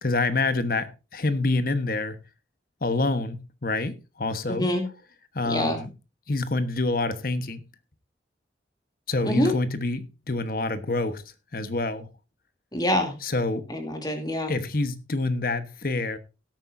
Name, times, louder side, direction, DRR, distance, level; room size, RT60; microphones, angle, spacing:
voice 1, 0.0-2.2 2.8-4.7 5.3-5.9 6.3-7.6 9.1-11.2 11.5-12.1 13.2-13.7 14.5-16.2, left 2 dB, 55° left, 1.2 m, -27 dB
voice 2, 4.5-4.8 5.4-5.8 9.2-9.5 12.7-13.1 13.7-14.5, left 1 dB, 25° left, 2.8 m, -25 dB
17.5 x 8.9 x 2.7 m
head